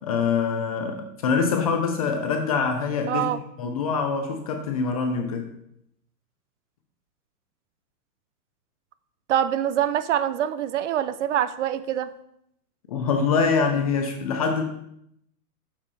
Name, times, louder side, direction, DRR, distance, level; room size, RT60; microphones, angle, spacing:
voice 1, 0.0-3.2 3.6-5.5 12.9-14.6, left 5 dB, 25° left, 5 dB, 0.4 m, -24 dB
voice 2, 3.1-3.4 9.3-12.1, right 10 dB, 50° right, 14 dB, 0.5 m, -24 dB
6.5 x 5.9 x 4.0 m, 0.76 s
hypercardioid pair, 145°, 48 cm